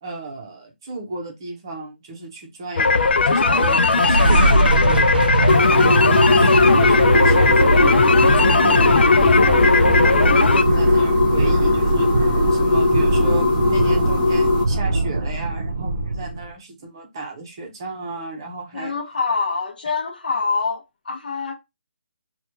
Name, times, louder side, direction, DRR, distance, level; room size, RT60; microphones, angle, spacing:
voice 1, 0.0-5.1 5.4-7.9 8.4-12.1 12.5-18.9, right 3 dB, 25° right, 0.7 m, -34 dB
sound 1, 2.8-10.6, left 4 dB, 75° left, 0.3 m, -18 dB
sound 2, 3.4-16.5, right 2 dB, 60° right, 0.7 m, -21 dB
sound 3, 5.5-14.6, left 3 dB, 15° left, 0.7 m, -19 dB
voice 2, 18.7-21.6, left 4 dB, 55° left, 0.8 m, -25 dB
2.9 x 2.3 x 3.4 m
hypercardioid pair, 175°, 6 cm